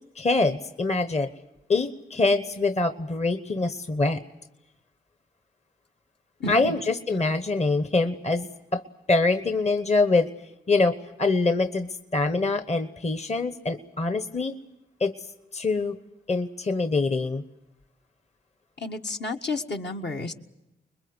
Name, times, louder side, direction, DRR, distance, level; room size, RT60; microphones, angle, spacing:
voice 1, 0.2-1.3 1.7-4.2 6.5-8.8 9.1-10.3 10.7-14.5 15.0-15.1 15.5-16.0 16.3-17.4, left 3 dB, 35° left, 10 dB, 1.1 m, -24 dB
voice 2, 6.4-6.7 18.8-20.3, left 3 dB, 60° left, 3 dB, 1.7 m, -31 dB
25.5 x 21.5 x 8.0 m, 0.89 s
cardioid pair, 60°, 20 cm